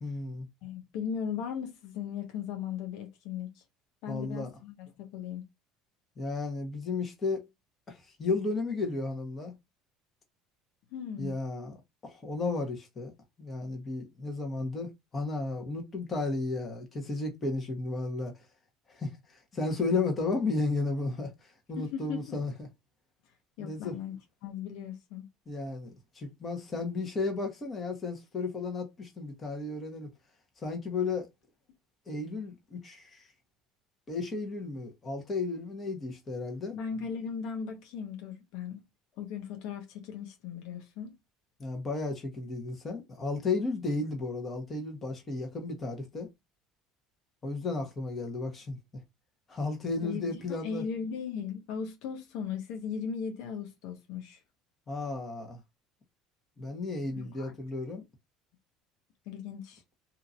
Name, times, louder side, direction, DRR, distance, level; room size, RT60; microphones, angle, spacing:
voice 1, 0.0-0.5 4.1-4.5 6.2-7.5 7.9-9.5 11.2-13.1 13.4-18.3 18.9-22.7 23.6-24.0 25.5-30.1 30.6-31.3 32.1-33.2 34.1-36.8 41.6-46.3 47.4-48.8 49.5-50.8 54.9-55.6 56.6-58.1, left 3 dB, 30° left, 1.2 m, -33 dB
voice 2, 0.6-3.6 4.0-5.4 10.9-11.3 21.8-22.4 23.6-24.2 24.4-25.3 36.7-38.8 39.2-41.1 50.0-50.3 50.6-54.4 57.2-57.6 59.3-59.8, left 7 dB, 75° left, 0.8 m, -37 dB
2.8 x 2.6 x 2.6 m
supercardioid pair, 100°, 0 cm